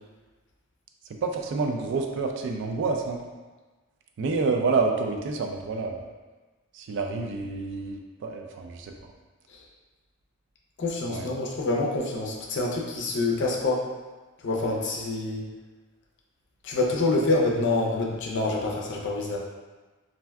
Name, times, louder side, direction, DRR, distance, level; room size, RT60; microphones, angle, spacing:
voice 1, 1.1-3.2 4.2-6.1 6.7-8.9 11.1-11.3, right 4 dB, 60° right, 3 dB, 0.3 m, -28 dB
voice 2, 10.8-13.9 14.4-15.5 16.6-19.4, left 2 dB, 55° left, -1 dB, 0.5 m, -26 dB
3.3 x 2.5 x 2.2 m, 1.3 s
head